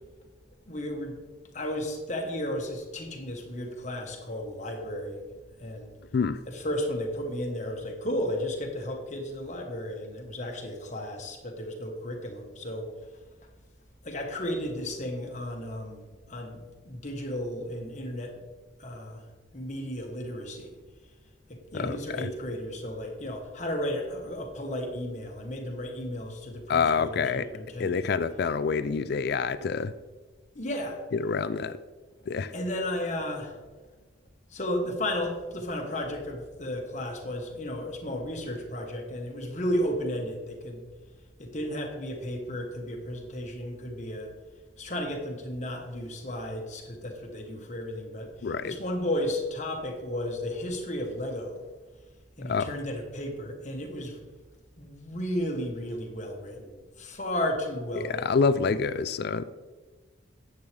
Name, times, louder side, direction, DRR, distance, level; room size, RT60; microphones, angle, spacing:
voice 1, 0.7-1.2 1.5-5.3 5.6-6.0 6.5-12.9 14.0-16.6 16.8-18.4 18.8-19.2 19.5-20.7 21.5-28.1 30.5-31.0 32.5-33.6 34.5-40.8 41.4-44.3 44.8-51.6 52.4-54.2 54.8-58.4, left 1 dB, 35° left, 2 dB, 1.4 m, -33 dB
voice 2, 21.7-22.3 26.7-27.5 27.8-29.9 31.1-31.8 32.3-32.5 48.4-48.7 52.4-52.7 58.0-59.4, left 5 dB, 50° left, 14 dB, 0.3 m, -27 dB
10.5 x 8.1 x 3.5 m, 1.3 s
head